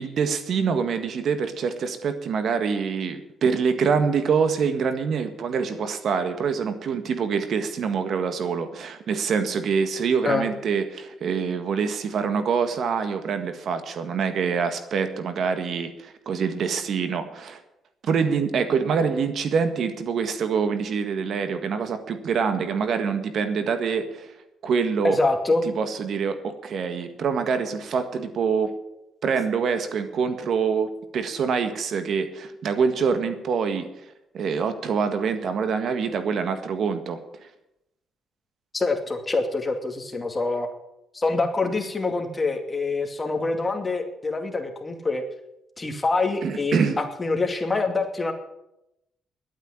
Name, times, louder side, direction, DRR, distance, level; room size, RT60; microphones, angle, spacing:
voice 1, 0.0-17.6 18.0-24.3 24.6-25.2 25.6-28.7 29.2-33.9 34.3-37.2 46.4-47.0, right 6 dB, 65° right, 9 dB, 1.6 m, -25 dB
voice 2, 25.0-25.6 38.7-40.7 41.1-45.2 45.8-48.3, left 3 dB, 25° left, 5 dB, 2.4 m, -25 dB
11.5 x 9.1 x 9.7 m, 0.88 s
cardioid pair, 90°, 0 cm